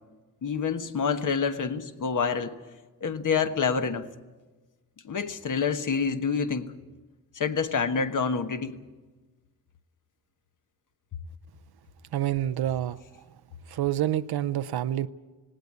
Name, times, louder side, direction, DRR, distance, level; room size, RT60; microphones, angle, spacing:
voice 1, 0.4-2.5 3.0-4.1 5.0-6.7 7.3-8.8, left 5 dB, 55° left, 8 dB, 1.3 m, -27 dB
voice 2, 12.1-13.0 13.7-15.1, right 12 dB, 80° right, 12 dB, 0.6 m, -27 dB
19.0 x 17.5 x 9.5 m, 1.2 s
wide cardioid pair, 115°, 37 cm